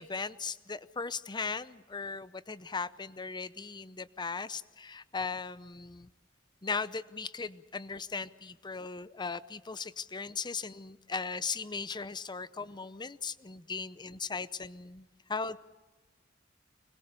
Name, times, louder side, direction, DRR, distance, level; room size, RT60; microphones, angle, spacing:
voice 1, 0.0-6.1 6.6-15.6, left 4 dB, 20° left, 16 dB, 0.7 m, -38 dB
25.5 x 21.5 x 6.8 m, 1.3 s
head